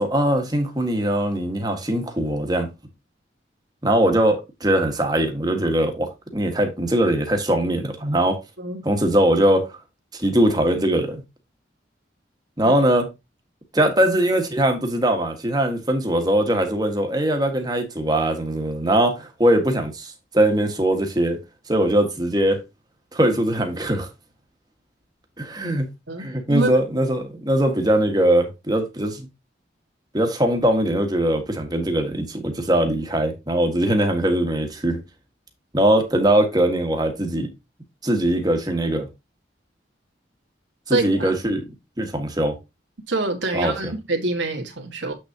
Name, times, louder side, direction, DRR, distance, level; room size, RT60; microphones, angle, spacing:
voice 1, 0.0-2.7 3.8-8.4 8.8-9.6 10.1-11.2 12.6-13.1 13.7-21.4 21.7-22.6 23.1-24.1 25.4-25.8 26.2-29.3 30.1-35.0 35.7-37.5 38.0-39.1 40.9-41.6 42.0-42.5 43.5-43.7, right 1 dB, 20° right, 1.6 m, -21 dB
voice 2, 26.1-26.7 40.9-41.3 43.1-45.1, right 2 dB, 80° right, 1.9 m, -26 dB
8.1 x 6.4 x 2.9 m
head